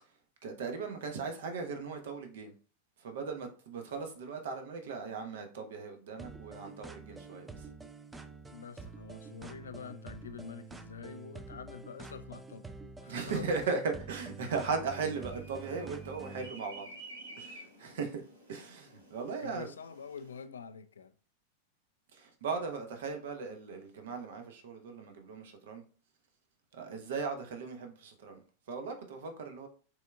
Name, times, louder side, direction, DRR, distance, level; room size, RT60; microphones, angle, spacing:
voice 1, 0.4-2.5 3.0-7.7 13.1-16.9 17.4-18.2 18.5-19.7 22.1-25.8 26.7-28.4 28.7-29.7, right 4 dB, 55° right, 0.9 m, -38 dB
sound 1, 6.2-16.5, right 3 dB, 10° right, 0.4 m, -47 dB
voice 2, 8.5-12.7 13.0-13.6 19.4-21.1, left 6 dB, 70° left, 0.4 m, -46 dB
sound 2, 14.8-20.4, right 2 dB, 75° right, 1.4 m, -52 dB
6.1 x 3.5 x 2.3 m
figure-of-eight pair, 90°, 0 cm